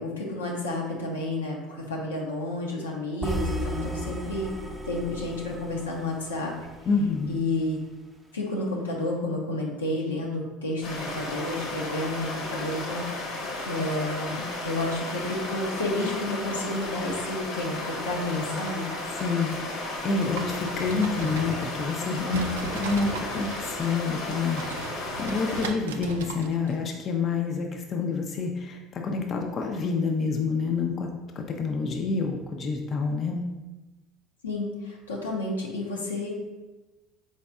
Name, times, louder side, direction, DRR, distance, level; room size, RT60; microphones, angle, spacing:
voice 1, 0.0-4.5 4.8-6.5 7.3-7.8 8.3-18.9 34.4-36.3, left 2 dB, 85° left, -1 dB, 0.7 m, -31 dB
sound 1, 3.2-7.3, right 1 dB, 20° right, 0.7 m, -34 dB
voice 2, 6.9-7.3 18.5-18.6 19.2-31.1 31.4-33.4, left 4 dB, 45° left, 2 dB, 0.5 m, -28 dB
sound 2, 10.8-25.7, left 2 dB, 65° left, 1.0 m, -34 dB
sound 3, 20.1-22.0 22.3-26.8, right 4 dB, 80° right, 0.3 m, -38 dB
4.2 x 4.1 x 2.3 m, 1.1 s
hypercardioid pair, 70°, 0 cm